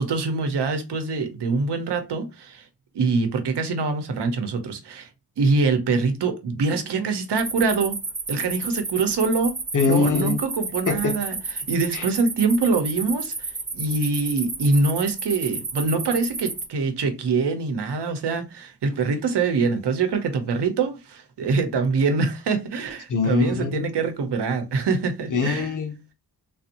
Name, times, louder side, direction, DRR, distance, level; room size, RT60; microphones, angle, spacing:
voice 1, 0.0-2.7 2.9-5.1 5.4-8.0 8.3-9.6 9.8-25.7, right 4 dB, 85° right, 0.9 m, -24 dB
sound 1, 7.4-16.7, right 3 dB, 20° right, 0.5 m, -32 dB
voice 2, 9.7-10.4 10.9-11.2 11.9-12.0 23.1-23.9 25.3-26.1, left 5 dB, 50° left, 0.8 m, -23 dB
3.8 x 2.6 x 2.8 m
wide cardioid pair, 135°, 40 cm